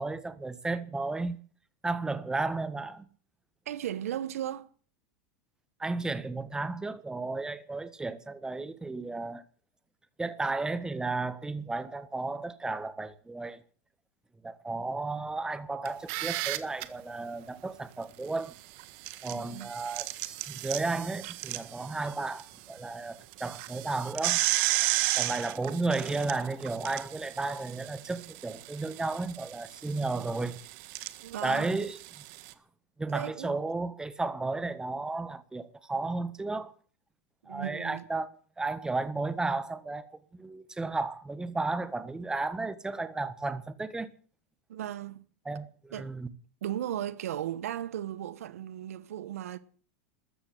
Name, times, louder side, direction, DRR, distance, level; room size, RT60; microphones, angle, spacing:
voice 1, 0.0-1.4 1.8-3.0 5.8-9.4 10.2-13.6 14.4-18.5 19.2-24.4 25.2-30.6 31.4-32.0 33.0-36.7 37.5-44.1 45.4-46.3, right 3 dB, 10° right, 1.5 m, -33 dB
voice 2, 3.6-4.7 19.3-19.7 31.2-31.7 33.1-33.6 37.4-38.0 44.7-45.2 45.9-46.1 46.6-49.6, right 11 dB, 85° right, 1.3 m, -36 dB
sound 1, 15.9-16.8 18.8-22.4 22.8-22.9 23.3-32.5, right 18 dB, 60° right, 1.6 m, -34 dB
14.0 x 13.0 x 7.7 m
hypercardioid pair, 115°, 8 cm